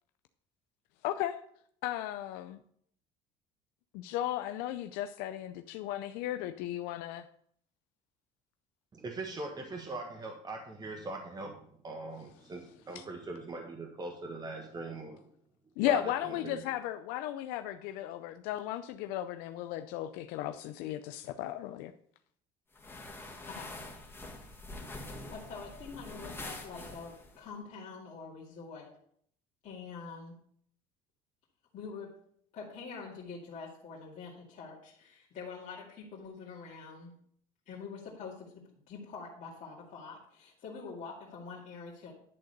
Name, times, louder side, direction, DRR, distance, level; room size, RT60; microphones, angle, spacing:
voice 1, 1.0-1.4 1.8-2.6 3.9-7.3 13.0-13.1 15.8-21.9, left 12 dB, 80° left, 9 dB, 0.5 m, -35 dB
voice 2, 8.9-15.3 15.8-16.6, right 2 dB, 25° right, 2 dB, 1.5 m, -41 dB
sound 1, 22.7-27.4, left 2 dB, 15° left, 2.1 m, -45 dB
voice 3, 23.5-24.2 25.3-28.9 29.6-30.3 31.7-32.1 32.5-37.1 37.7-42.1, left 5 dB, 50° left, -6 dB, 2.3 m, -45 dB
11.0 x 3.8 x 6.6 m, 0.64 s
supercardioid pair, 95°, 16 cm